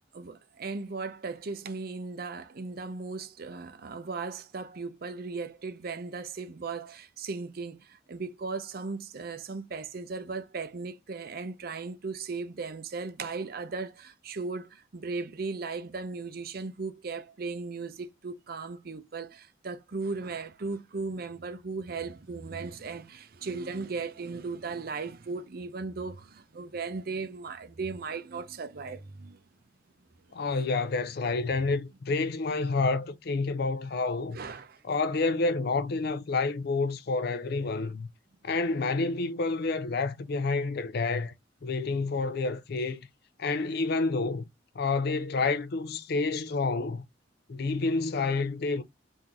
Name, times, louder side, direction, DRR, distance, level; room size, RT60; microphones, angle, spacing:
voice 1, 0.1-29.4 34.3-34.8, right 4 dB, 50° right, 0.6 m, -37 dB
voice 2, 30.3-34.4 34.9-38.1 38.4-41.3 41.6-43.0 43.4-44.4 44.8-47.0 47.5-48.8, left 3 dB, 55° left, 0.5 m, -29 dB
3.7 x 2.6 x 3.0 m
head